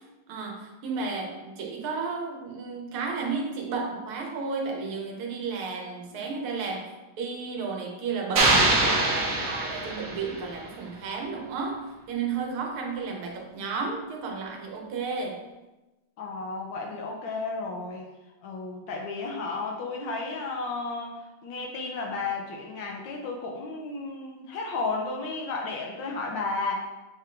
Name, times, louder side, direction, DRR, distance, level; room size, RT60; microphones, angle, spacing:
voice 1, 0.3-6.9 7.2-11.8 12.1-15.4, right 4 dB, 90° right, 2 dB, 1.6 m, -33 dB
sound 1, 8.4-10.5, right 2 dB, 60° right, 0.9 m, -23 dB
voice 2, 16.2-18.1 18.4-26.8, left 3 dB, 75° left, 1 dB, 1.2 m, -33 dB
6.5 x 2.9 x 2.5 m, 1.1 s
omnidirectional pair, 2.3 m